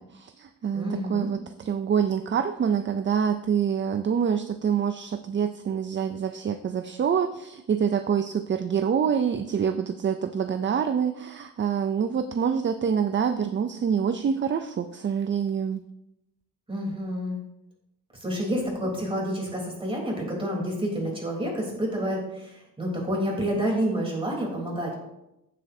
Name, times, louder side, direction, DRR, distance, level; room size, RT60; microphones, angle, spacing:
voice 1, 0.0-15.9, right 7 dB, 35° right, 9 dB, 0.4 m, -26 dB
voice 2, 0.7-1.3 16.7-17.4 18.2-24.9, equal, 15° right, -2 dB, 3.4 m, -29 dB
15.5 x 7.5 x 2.7 m, 0.90 s
wide cardioid pair, 145°, 34 cm